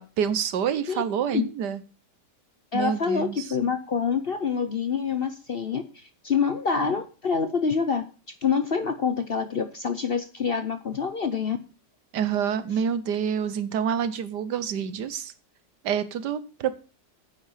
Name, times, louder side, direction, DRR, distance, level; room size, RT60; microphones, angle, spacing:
voice 1, 0.0-1.8 2.7-3.5 12.1-15.3 15.8-16.7, right 8 dB, 80° right, 13 dB, 1.5 m, -27 dB
voice 2, 2.7-11.6, left 6 dB, 50° left, 10 dB, 0.7 m, -26 dB
9.7 x 8.4 x 5.7 m, 0.35 s
omnidirectional pair, 1.8 m